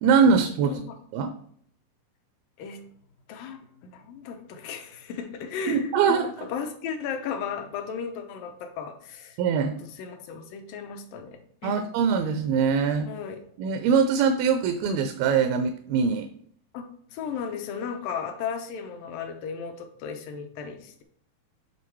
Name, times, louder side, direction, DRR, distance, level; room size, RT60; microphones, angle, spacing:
voice 1, 0.0-0.8 1.1-1.3 5.7-6.5 9.4-9.8 11.6-13.1 13.6-16.3, right 6 dB, 85° right, 8 dB, 2.4 m, -23 dB
voice 2, 3.3-9.4 10.0-11.9 13.1-13.4 16.7-16.8 17.1-21.0, left 6 dB, 75° left, 6 dB, 2.3 m, -35 dB
8.8 x 3.6 x 4.5 m, 0.63 s
omnidirectional pair, 4.3 m